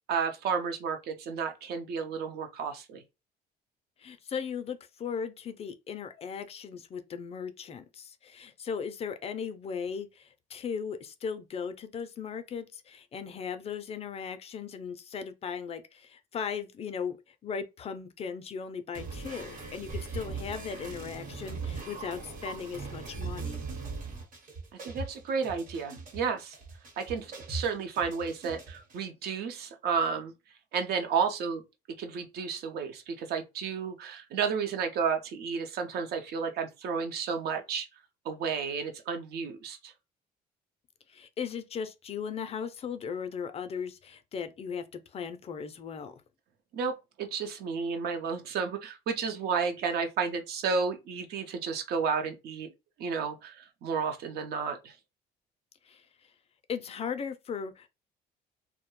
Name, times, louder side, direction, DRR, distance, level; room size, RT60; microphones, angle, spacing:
voice 1, 0.1-3.0 24.8-26.6 27.0-30.3 30.7-31.6 32.0-37.9 38.2-39.9 46.7-52.7 53.0-54.9, right 6 dB, 70° right, 0.6 m, -32 dB
voice 2, 4.0-23.6 41.1-46.2 55.8-56.1 56.7-57.9, left 6 dB, 35° left, 0.4 m, -37 dB
sound 1, 18.9-29.0, right 4 dB, 50° right, 1.0 m, -40 dB
2.3 x 2.1 x 3.0 m
cardioid pair, 110°, 17 cm